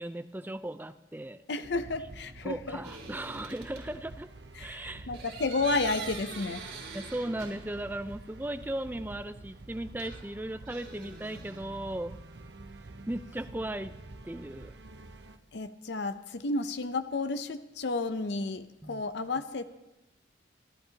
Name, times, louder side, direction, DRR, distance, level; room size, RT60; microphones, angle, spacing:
voice 1, 0.0-1.4 2.4-4.3 4.6-5.1 6.9-12.2 13.1-13.9 14.2-14.7 18.8-19.0, right 1 dB, 10° right, 11 dB, 0.4 m, -37 dB
voice 2, 1.5-2.8 4.6-6.6 15.5-19.7, left 3 dB, 65° left, 11 dB, 0.6 m, -32 dB
sound 1, 1.6-15.4, right 2 dB, 65° right, 0.8 m, -48 dB
sound 2, 2.8-3.9 5.1-8.0 8.3-8.4 10.0-11.6, right 4 dB, 90° right, 4.6 m, -44 dB
27.0 x 11.5 x 2.8 m, 1.0 s
head